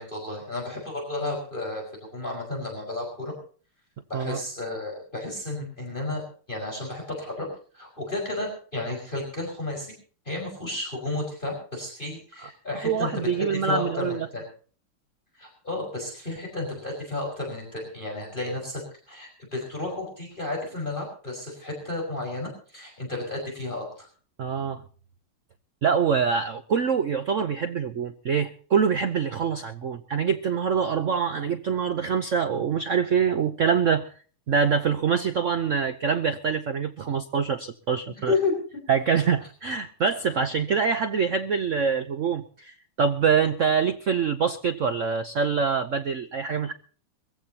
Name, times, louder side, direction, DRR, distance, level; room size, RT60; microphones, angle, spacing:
voice 1, 0.0-1.8 2.1-3.3 4.1-6.2 6.5-7.5 7.7-9.9 10.3-14.4 15.4-18.8 19.1-24.1 38.3-38.5, left 2 dB, 20° left, 0 dB, 5.2 m, -32 dB
voice 2, 12.8-14.3 24.4-24.8 25.8-34.1 34.5-38.3 38.9-46.7, right 6 dB, 80° right, 10 dB, 0.6 m, -25 dB
22.5 x 15.5 x 2.8 m, 0.41 s
omnidirectional pair, 2.4 m